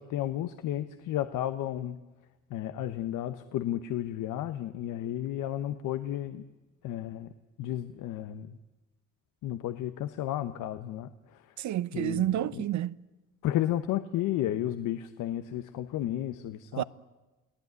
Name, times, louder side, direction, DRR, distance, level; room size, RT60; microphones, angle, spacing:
voice 1, 0.0-2.0 2.5-6.4 6.8-7.3 7.6-8.6 9.4-11.5 11.9-12.6 13.4-16.8, left 12 dB, 90° left, 1.1 m, -33 dB
voice 2, 11.6-12.9 16.8-16.9, right 13 dB, 70° right, 0.8 m, -29 dB
29.5 x 17.5 x 9.6 m
cardioid pair, 90°, 30 cm